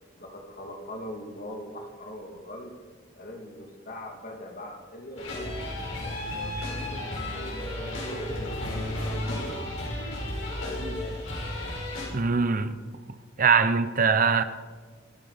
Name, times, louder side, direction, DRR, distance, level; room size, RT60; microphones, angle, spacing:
voice 1, 0.1-2.7 3.1-5.3 6.0-9.5 10.6-11.3, equal, 45° left, 2.6 m, -41 dB
sound 1, 5.2-12.1, left 1 dB, 80° left, 6.2 m, -33 dB
voice 2, 12.1-12.7 13.4-14.4, right 5 dB, 45° right, 0.7 m, -22 dB
26.5 x 9.4 x 5.1 m
head